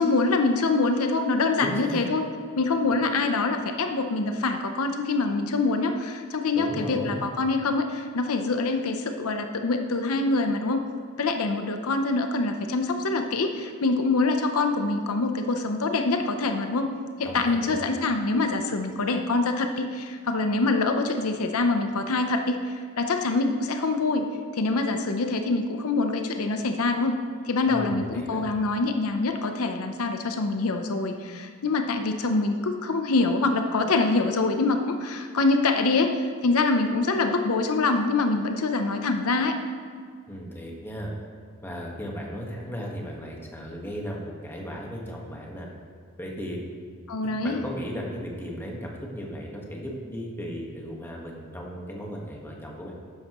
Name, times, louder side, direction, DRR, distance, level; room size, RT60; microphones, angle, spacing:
voice 1, 0.0-2.2 2.6-10.9 11.2-24.3 24.5-27.2 27.4-39.6 47.1-47.6, left 3 dB, 75° left, 6 dB, 0.7 m, -25 dB
voice 2, 1.6-2.1 6.5-7.2 17.2-17.8 27.7-28.4 40.3-41.1 41.6-45.7 46.2-46.6 47.4-52.9, equal, 10° left, -2 dB, 1.4 m, -36 dB
12.5 x 9.7 x 3.0 m, 2.1 s
head